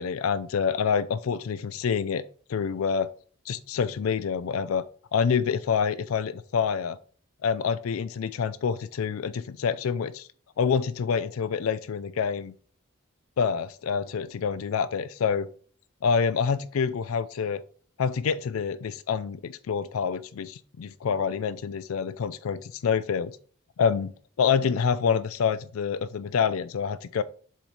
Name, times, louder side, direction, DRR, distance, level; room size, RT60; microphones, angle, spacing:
voice 1, 0.0-2.2 2.5-3.1 3.5-4.8 5.1-7.0 7.4-10.3 10.6-12.5 13.4-15.5 16.0-17.6 18.0-23.4 23.8-24.1 24.4-27.2, left 6 dB, 85° left, 13 dB, 0.4 m, -27 dB
7.3 x 3.1 x 5.3 m, 0.43 s
head